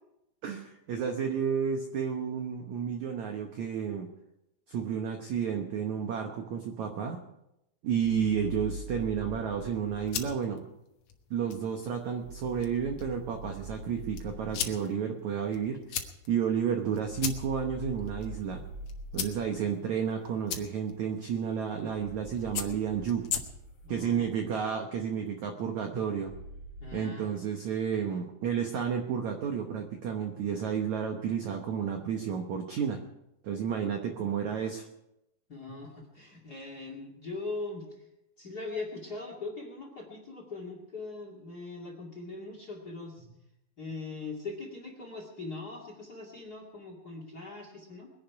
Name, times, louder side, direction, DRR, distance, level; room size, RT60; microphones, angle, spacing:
voice 1, 0.4-4.1 4.7-7.2 7.8-10.6 11.3-15.8 16.3-18.6 19.1-23.3 23.9-26.3 26.9-33.0 33.4-34.9 35.7-35.8, right 7 dB, 75° right, 4 dB, 1.7 m, -31 dB
sound 1, 8.0-10.4 12.2-14.7 17.0-19.6 21.9-24.5 26.3-26.9, right 1 dB, 45° right, 3.4 m, -43 dB
sound 2, 9.8-23.9, left 8 dB, 70° left, 1.7 m, -41 dB
voice 2, 23.8-24.3 26.8-27.3 35.5-38.0 38.4-43.3 43.8-48.1, left 3 dB, 30° left, 2 dB, 2.0 m, -41 dB
22.0 x 10.5 x 4.7 m, 0.87 s
omnidirectional pair, 4.9 m